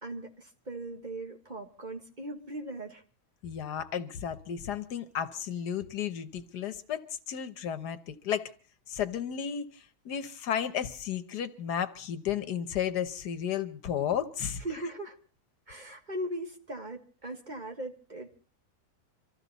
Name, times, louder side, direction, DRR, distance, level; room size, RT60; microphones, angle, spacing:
voice 1, 0.0-3.0 14.4-15.2 15.7-18.4, right 1 dB, 30° right, 3 dB, 1.6 m, -39 dB
voice 2, 3.4-7.0 7.3-8.5 8.9-14.6, left 9 dB, 85° left, 10 dB, 1.6 m, -33 dB
25.0 x 14.5 x 4.0 m, 0.40 s
omnidirectional pair, 1.7 m